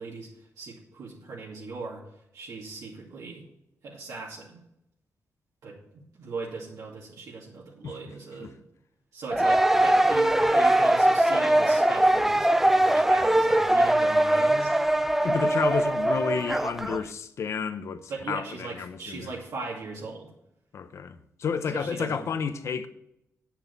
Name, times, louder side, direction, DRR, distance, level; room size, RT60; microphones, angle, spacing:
voice 1, 0.0-2.0 2.3-3.4 3.8-4.6 5.6-8.6 9.1-14.7 18.1-20.3 21.7-22.2, right 3 dB, 80° right, 2.5 m, -39 dB
sound 1, 9.3-17.0, right 1 dB, 5° right, 0.4 m, -21 dB
voice 2, 15.2-19.3 20.7-22.9, left 6 dB, 60° left, 0.8 m, -31 dB
9.1 x 5.9 x 8.3 m
wide cardioid pair, 160°, 6 cm